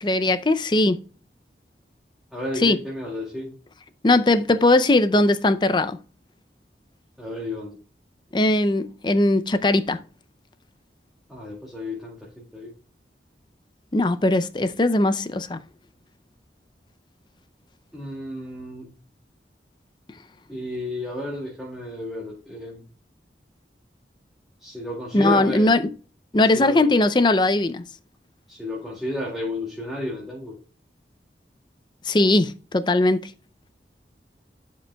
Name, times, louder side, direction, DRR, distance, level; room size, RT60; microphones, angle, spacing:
voice 1, 0.0-1.0 2.6-2.8 4.0-6.0 8.3-10.0 13.9-15.6 25.1-25.9 26.3-27.8 32.1-33.3, left 2 dB, 25° left, 0.5 m, -19 dB
voice 2, 2.3-3.6 7.2-7.8 11.3-12.7 17.9-18.9 20.5-22.8 24.6-25.7 26.4-26.9 28.5-30.6, left 1 dB, ahead, 2.2 m, -32 dB
12.0 x 5.1 x 2.2 m
head